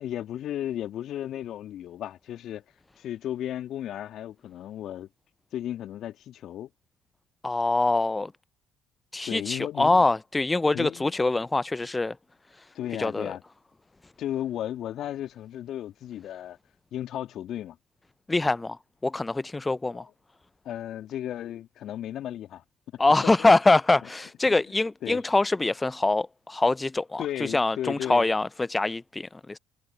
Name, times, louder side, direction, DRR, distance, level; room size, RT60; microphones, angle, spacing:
voice 1, 0.0-2.6 3.0-5.1 5.5-6.7 9.2-10.1 10.7-11.2 12.7-13.4 14.2-16.6 16.9-17.8 19.9-20.1 20.6-22.6 22.9-23.5 24.7-25.2 27.2-28.3, left 11 dB, 55° left, 2.5 m, -35 dB
voice 2, 7.4-8.3 9.1-12.2 13.0-13.3 18.3-20.1 23.0-29.6, left 2 dB, 15° left, 0.5 m, -24 dB
hypercardioid pair, 60°, 0 cm